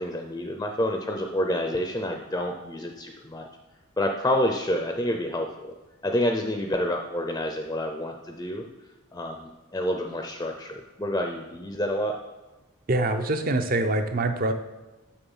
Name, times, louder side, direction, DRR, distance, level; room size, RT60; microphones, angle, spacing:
voice 1, 0.0-3.5 4.0-5.7 6.0-8.6 9.1-12.1, left 1 dB, 15° left, 3 dB, 0.5 m, -28 dB
voice 2, 12.9-14.5, right 2 dB, 40° right, 8 dB, 0.6 m, -24 dB
7.1 x 6.3 x 5.5 m, 1.1 s
head